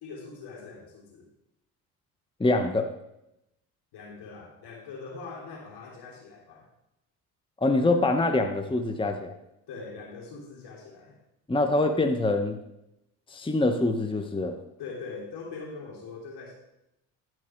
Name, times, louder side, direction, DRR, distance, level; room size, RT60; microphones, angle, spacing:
voice 1, 0.0-1.3 3.9-6.7 9.7-11.2 14.8-16.5, left 4 dB, 70° left, -1 dB, 3.3 m, -42 dB
voice 2, 2.4-2.9 7.6-9.3 11.5-12.6 13.3-14.6, left 2 dB, 10° left, 5 dB, 1.0 m, -24 dB
14.0 x 4.8 x 4.5 m, 0.85 s
supercardioid pair, 70°, 42 cm